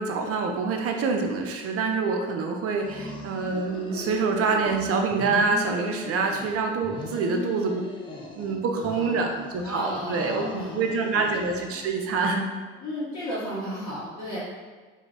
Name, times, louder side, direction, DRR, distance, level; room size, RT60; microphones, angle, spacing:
voice 1, 0.0-7.9 8.3-12.4, right 4 dB, 40° right, 3 dB, 0.5 m, -26 dB
sound 1, 2.7-4.8 5.1-6.6 6.8-8.6 8.8-12.0, left 2 dB, 15° left, 0.5 m, -39 dB
voice 2, 8.7-11.1 12.8-14.4, equal, 45° left, -8 dB, 0.8 m, -34 dB
2.3 x 2.1 x 3.8 m, 1.4 s
hypercardioid pair, 55°, 36 cm